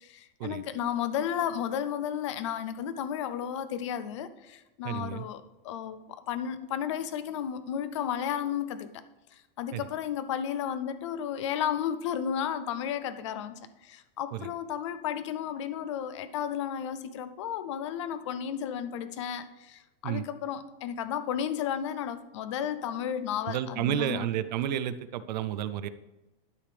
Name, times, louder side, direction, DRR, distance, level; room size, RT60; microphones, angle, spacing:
voice 1, 0.0-9.0 9.3-24.3, left 9 dB, 35° left, 12 dB, 0.4 m, -33 dB
voice 2, 4.8-5.3 9.7-9.9 14.3-14.5 20.0-20.2 23.5-25.9, right 10 dB, 50° right, 13 dB, 0.5 m, -31 dB
12.0 x 5.0 x 3.3 m, 1.1 s
supercardioid pair, 180°, 29 cm